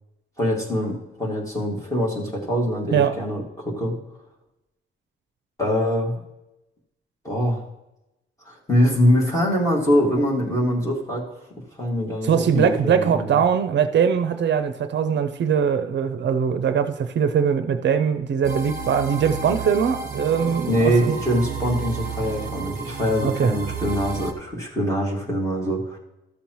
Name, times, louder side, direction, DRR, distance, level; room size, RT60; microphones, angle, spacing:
voice 1, 0.4-3.9 5.6-6.1 7.2-7.6 8.5-11.3 11.8-13.4 20.7-26.0, equal, 15° left, 2.1 m, -23 dB
voice 2, 12.2-21.1 23.2-23.5, right 7 dB, 60° right, 0.5 m, -21 dB
sound 1, 18.4-24.3, right 5 dB, 40° right, 1.2 m, -32 dB
13.5 x 7.0 x 3.0 m
wide cardioid pair, 180°, 21 cm